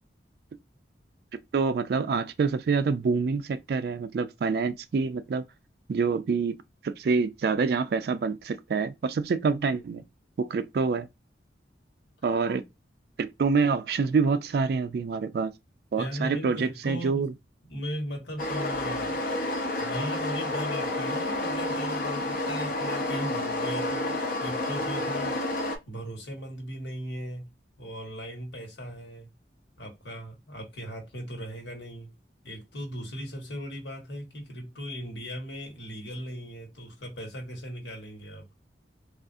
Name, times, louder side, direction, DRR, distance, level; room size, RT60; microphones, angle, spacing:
voice 1, 1.5-5.4 5.9-6.5 6.8-10.0 10.4-11.1 12.2-12.6 13.2-15.5 15.9-17.3, right 5 dB, 60° right, 0.3 m, -26 dB
voice 2, 16.0-17.3 17.6-19.2 19.8-25.6 25.9-27.5 27.8-29.3 29.8-32.1 32.4-38.5, equal, 75° left, 1.3 m, -38 dB
sound 1, 18.4-25.8, left 1 dB, 50° left, 0.7 m, -30 dB
3.5 x 2.4 x 2.5 m
head